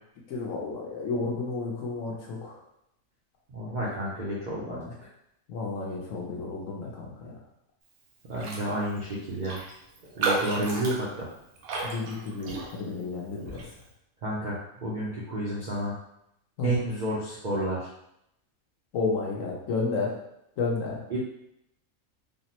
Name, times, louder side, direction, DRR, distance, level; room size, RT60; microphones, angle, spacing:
voice 1, 0.3-2.6 4.7-4.9 5.5-7.4 11.8-13.6 16.6-16.7 18.9-20.1 20.6-21.0, left 3 dB, 70° left, -1 dB, 1.0 m, -31 dB
voice 2, 3.5-4.8 8.3-9.6 10.1-11.3 14.2-16.0 16.6-17.9 21.1-21.2, right 1 dB, 60° right, -6 dB, 0.5 m, -30 dB
Raindrop, 8.3-8.7 9.0-9.1 9.4-13.0 13.5-13.7, right 3 dB, 85° right, 1.1 m, -32 dB
3.5 x 2.0 x 2.8 m, 0.79 s
omnidirectional pair, 1.5 m